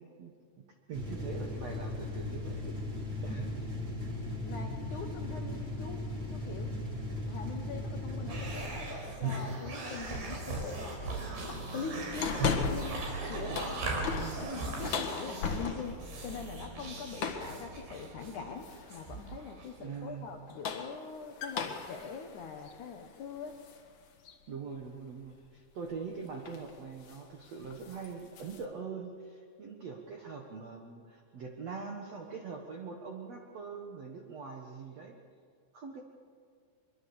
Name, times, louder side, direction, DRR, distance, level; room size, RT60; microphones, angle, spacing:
voice 1, 0.0-2.8 3.2-3.5 14.1-14.4 19.8-20.3 24.5-35.2 35.7-36.0, right 5 dB, 80° right, 2 dB, 1.4 m, -43 dB
sound 1, 0.9-8.6, left 1 dB, 25° right, 3.6 m, -37 dB
voice 2, 3.3-3.6 4.4-6.7 7.2-11.0 11.5-13.0 13.3-13.6 14.8-23.5, left 5 dB, 75° left, 4 dB, 1.8 m, -43 dB
sound 2, 8.3-20.0, right 2 dB, 55° right, 6.2 m, -38 dB
sound 3, 12.2-13.1 13.4-16.1 17.2-17.6 18.6-19.1 20.3-23.8 24.3-24.4 25.9-26.1 26.4-26.7 27.0-27.3 27.6-28.6, left 5 dB, 55° left, 2.2 m, -36 dB
24.0 x 23.0 x 7.1 m, 2.2 s
omnidirectional pair, 5.5 m